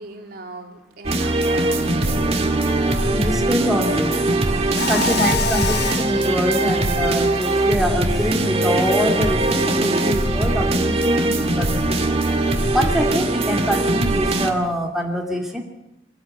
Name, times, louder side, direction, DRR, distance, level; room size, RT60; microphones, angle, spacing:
voice 1, 0.0-5.8 6.4-6.9, right 2 dB, 55° right, 2 dB, 3.3 m, -38 dB
sound 1, 1.0-14.5, right 2 dB, 35° right, 2.0 m, -21 dB
voice 2, 3.1-4.1 4.9-12.1 12.7-15.6, equal, ahead, 0 dB, 2.4 m, -24 dB
Mechanisms, 4.7-6.2, left 5 dB, 65° left, 0.8 m, -25 dB
24.0 x 13.5 x 9.0 m, 0.88 s
head